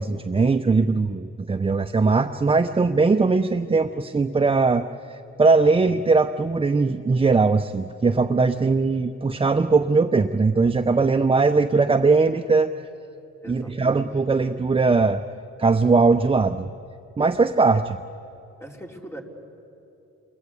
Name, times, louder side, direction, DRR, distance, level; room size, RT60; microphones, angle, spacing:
voice 1, 0.0-12.7 13.5-15.2 15.6-16.7 17.2-18.0, right 4 dB, 20° right, 9 dB, 0.6 m, -20 dB
voice 2, 13.4-14.0 18.6-19.2, equal, 10° left, 1 dB, 3.5 m, -40 dB
29.0 x 22.0 x 8.4 m, 2.8 s
cardioid pair, 90°, 30 cm